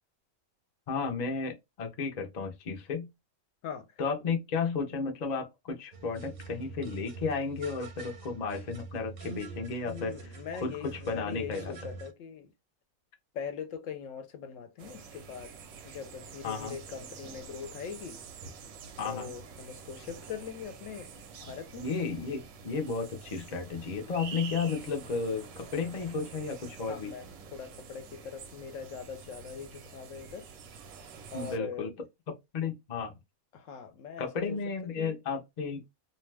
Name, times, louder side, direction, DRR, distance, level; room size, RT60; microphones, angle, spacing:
voice 1, 0.9-3.1 4.0-11.7 16.4-16.8 19.0-19.3 21.4-27.1 31.3-31.9 32.5-33.1 34.2-35.8, left 5 dB, 50° left, 0.5 m, -33 dB
sound 1, 5.9-12.1, right 4 dB, 55° right, 0.7 m, -45 dB
voice 2, 9.9-12.5 13.3-15.5 15.8-18.2 19.0-21.8 26.9-27.3 27.5-30.5 31.3-31.9 33.5-34.6 35.0-35.1, left 7 dB, 70° left, 0.9 m, -41 dB
sound 2, 14.8-31.6, right 6 dB, 85° right, 1.0 m, -47 dB
2.6 x 2.2 x 3.2 m
omnidirectional pair, 1.5 m